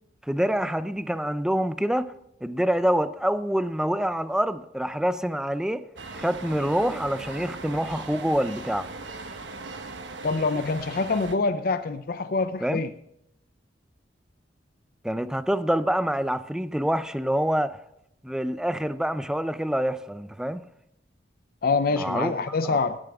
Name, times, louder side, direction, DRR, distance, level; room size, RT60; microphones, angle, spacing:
voice 1, 0.3-2.1 2.4-5.8 6.1-8.9 12.6-12.8 15.0-17.8 18.2-20.6 22.0-22.3 22.7-22.8, equal, 5° right, 0.4 m, -26 dB
sound 1, 6.0-11.4, right 3 dB, 80° right, 1.2 m, -39 dB
voice 2, 10.2-12.9 21.6-23.0, left 4 dB, 55° left, 0.6 m, -25 dB
17.5 x 9.4 x 3.5 m
head